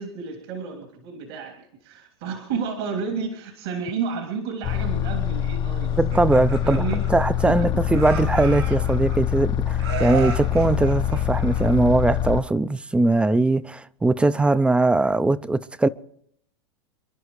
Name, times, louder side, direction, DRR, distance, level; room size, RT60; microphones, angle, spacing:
voice 1, 0.0-6.2 6.6-7.0 7.4-7.6, right 5 dB, 70° right, 2.9 m, -31 dB
sound 1, 4.6-12.4, left 10 dB, 35° left, 0.7 m, -25 dB
Laughter, 5.9-7.6 7.9-9.4 9.8-12.1, right 6 dB, 85° right, 5.7 m, -35 dB
voice 2, 6.0-15.9, right 2 dB, 10° right, 0.5 m, -21 dB
28.0 x 11.0 x 3.2 m
hypercardioid pair, 110°, 13 cm